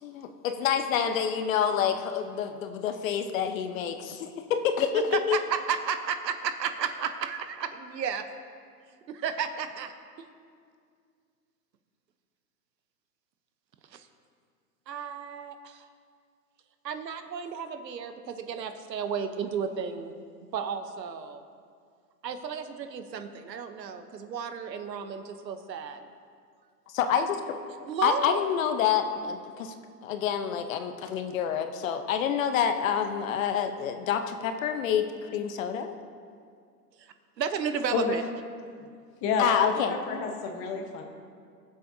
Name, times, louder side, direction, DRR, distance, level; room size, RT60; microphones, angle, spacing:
voice 1, 0.0-4.3 4.6-5.4 26.9-27.4 28.0-29.7 30.0-36.0 39.4-39.9, left 8 dB, 55° left, 7 dB, 0.9 m, -27 dB
voice 2, 5.1-8.2 9.1-9.9 10.2-10.3 13.9-14.1 14.9-15.8 16.8-20.1 20.5-21.4 22.2-26.1 27.8-28.4 37.0-37.1 37.4-38.2, right 7 dB, 85° right, 9 dB, 1.0 m, -33 dB
voice 3, 39.2-41.0, left 5 dB, 25° left, 3 dB, 1.1 m, -29 dB
20.0 x 7.6 x 2.8 m, 2.2 s
hypercardioid pair, 135°, 49 cm